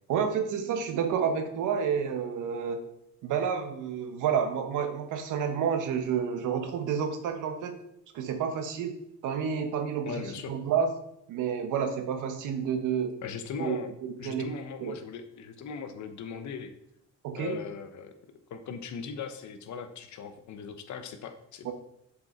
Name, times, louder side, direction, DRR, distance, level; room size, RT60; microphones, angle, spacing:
voice 1, 0.1-2.8 3.2-7.7 8.1-8.9 9.2-10.9 11.3-13.1 13.6-13.8 14.2-14.5 14.8-15.0 17.2-17.6 21.6-21.7, right 7 dB, 85° right, 8 dB, 1.1 m, -29 dB
voice 2, 10.1-10.6 13.2-13.9 14.2-16.7 17.4-18.1 18.5-21.7, left 6 dB, 70° left, 8 dB, 1.0 m, -39 dB
7.0 x 4.9 x 4.3 m, 0.78 s
cardioid pair, 90°, 30 cm